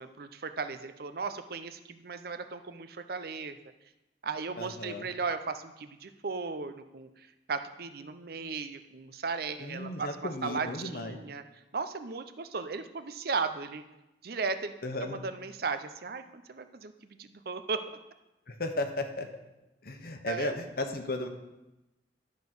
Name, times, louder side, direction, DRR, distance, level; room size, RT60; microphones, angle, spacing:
voice 1, 0.0-3.6 4.2-11.4 11.7-13.8 14.2-14.7 15.0-17.8 20.2-20.5, right 4 dB, 60° right, 10 dB, 0.6 m, -36 dB
voice 2, 4.6-5.1 9.6-11.2 14.8-15.2 18.5-19.3 19.8-21.3, left 2 dB, 55° left, 6 dB, 1.1 m, -35 dB
11.0 x 5.2 x 6.2 m, 0.98 s
head